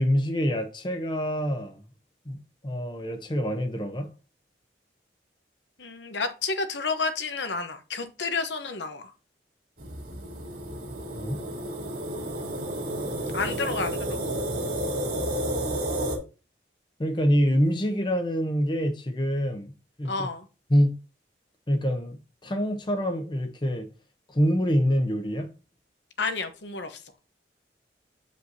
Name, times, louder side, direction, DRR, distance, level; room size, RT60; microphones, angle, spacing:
voice 1, 0.0-1.8 2.3-2.4 2.6-4.1 11.1-11.4 17.0-19.7 20.0-20.3 20.7-20.9 21.7-23.9 24.3-25.5, equal, 25° left, 0.8 m, -25 dB
voice 2, 5.8-9.1 13.3-14.2 20.0-20.4 26.2-27.0, left 4 dB, 80° left, 1.0 m, -30 dB
sound 1, 9.8-16.2, right 1 dB, 55° right, 2.3 m, -31 dB
7.7 x 5.2 x 2.7 m
head